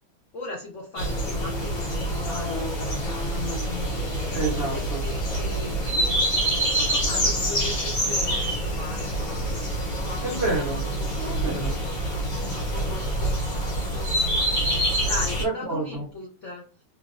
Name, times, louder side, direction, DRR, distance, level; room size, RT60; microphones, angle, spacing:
voice 1, 0.3-3.5 4.0-6.3 6.6-10.2 12.3-12.4 12.7-13.0 15.0-16.6, left 2 dB, 85° left, -2 dB, 0.6 m, -39 dB
sound 1, 1.0-15.4, right 1 dB, 50° left, 1.3 m, -26 dB
voice 2, 4.3-5.0 10.2-10.8 11.2-11.8 15.4-16.1, right 2 dB, 60° right, -4 dB, 0.6 m, -29 dB
3.2 x 2.6 x 2.4 m, 0.36 s
omnidirectional pair, 2.4 m